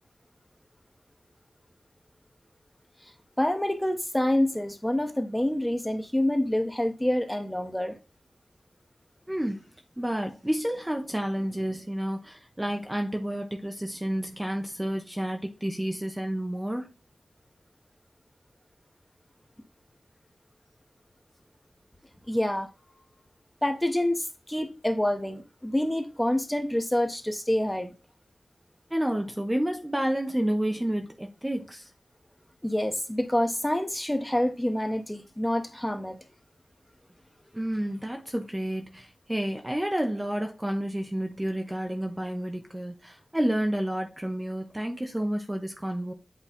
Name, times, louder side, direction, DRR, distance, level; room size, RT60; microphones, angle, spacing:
voice 1, 3.4-8.0 22.3-22.7 23.6-27.9 32.6-36.2, left 1 dB, 10° left, 1.1 m, -27 dB
voice 2, 9.3-9.6 10.0-16.9 28.9-31.9 37.5-46.1, right 1 dB, 10° right, 0.9 m, -30 dB
8.3 x 3.2 x 4.2 m
wide cardioid pair, 85°, 0 cm